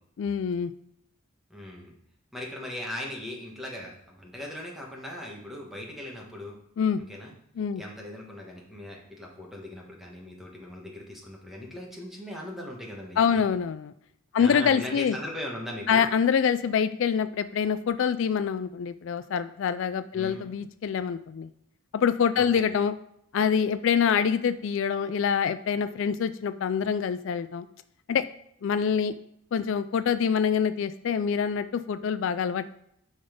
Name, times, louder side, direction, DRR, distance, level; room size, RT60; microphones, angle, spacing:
voice 1, 0.2-0.7 6.8-7.0 7.6-7.8 13.2-13.9 14.3-15.2 15.9-21.5 21.9-22.9 23.3-27.7 28.1-28.2 28.6-29.2 29.5-32.7, left 7 dB, 65° left, 12 dB, 0.3 m, -25 dB
voice 2, 1.5-1.9 2.3-6.6 7.1-7.3 7.7-13.4 14.4-16.1 20.1-20.5 22.4-22.6, left 1 dB, ahead, -2 dB, 1.5 m, -39 dB
10.0 x 4.0 x 5.1 m, 0.74 s
head